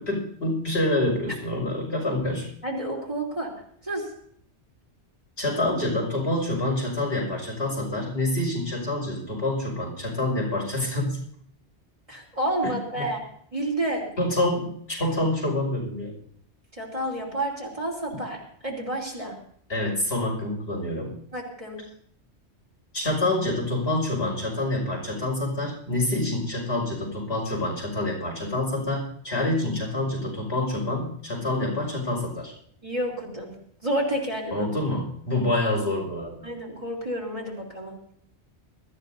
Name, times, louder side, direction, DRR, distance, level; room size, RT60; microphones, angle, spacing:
voice 1, 0.0-2.5 5.4-11.2 12.6-13.1 14.2-16.1 19.7-21.1 22.9-32.5 34.5-36.4, left 1 dB, 65° left, -2 dB, 6.0 m, -27 dB
voice 2, 2.6-3.5 3.8-4.1 12.1-13.2 13.5-14.1 16.8-18.4 18.6-19.3 21.3-21.8 32.8-33.5 33.8-34.7 36.4-38.0, right 1 dB, 30° right, -3 dB, 3.5 m, -29 dB
22.0 x 14.0 x 2.7 m, 0.62 s
omnidirectional pair, 1.2 m